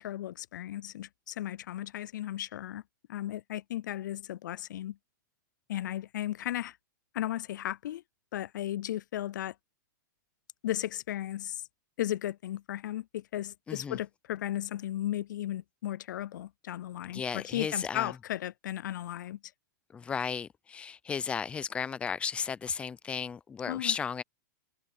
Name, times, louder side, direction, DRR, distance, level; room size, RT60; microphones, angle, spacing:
voice 1, 0.0-2.8 3.1-5.0 5.7-6.8 7.1-8.0 8.3-9.5 10.6-11.6 12.0-19.4 23.7-23.9, left 13 dB, 65° left, 0.4 m, -35 dB
voice 2, 13.7-14.0 17.1-18.1 19.9-24.2, left 6 dB, 10° left, 0.6 m, -34 dB
hypercardioid pair, 155°, 11 cm